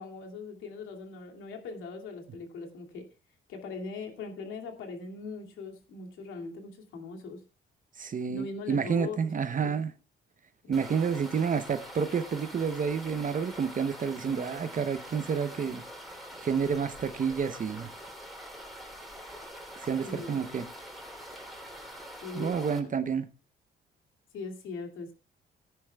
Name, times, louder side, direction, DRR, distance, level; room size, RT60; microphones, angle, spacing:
voice 1, 0.0-3.1 3.5-7.4 8.3-9.8 10.6-11.3 20.0-20.5 22.2-22.6 24.3-25.1, left 4 dB, 85° left, 2.6 m, -41 dB
voice 2, 8.0-9.9 10.7-15.8 16.4-17.9 19.8-20.7 22.3-23.3, right 6 dB, 40° right, 0.9 m, -29 dB
sound 1, 10.7-22.8, equal, ahead, 3.5 m, -45 dB
18.0 x 10.0 x 2.3 m
cardioid pair, 90°, 20 cm